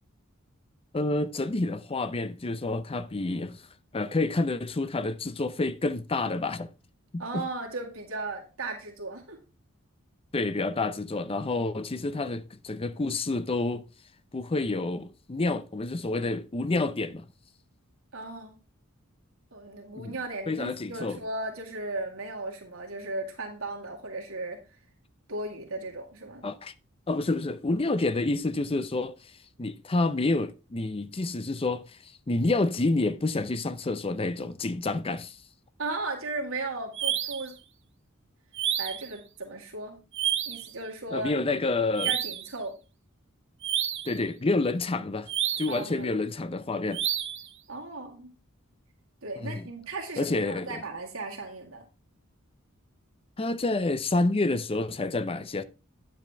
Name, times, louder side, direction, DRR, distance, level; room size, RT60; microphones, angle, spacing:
voice 1, 0.9-3.6 3.9-6.7 7.1-7.5 10.3-13.9 14.3-17.3 19.9-20.2 20.5-21.2 26.4-26.7 27.1-29.1 29.6-35.4 41.1-42.1 44.1-45.3 45.6-47.0 49.4-49.7 50.2-50.8 53.4-55.6, left 2 dB, 25° left, 0.6 m, -28 dB
voice 2, 7.2-9.4 18.1-18.6 19.5-24.6 25.3-26.5 35.8-37.6 38.8-40.0 40.5-41.3 42.0-42.8 45.7-46.3 47.7-48.3 49.2-51.9, right 2 dB, 75° right, 2.0 m, -36 dB
sound 1, 36.9-37.5 38.5-39.1 40.1-40.7 42.0-42.5 43.6-44.2 45.3-45.8 46.9-47.5, right 10 dB, 60° right, 0.9 m, -30 dB
9.6 x 7.4 x 3.4 m
head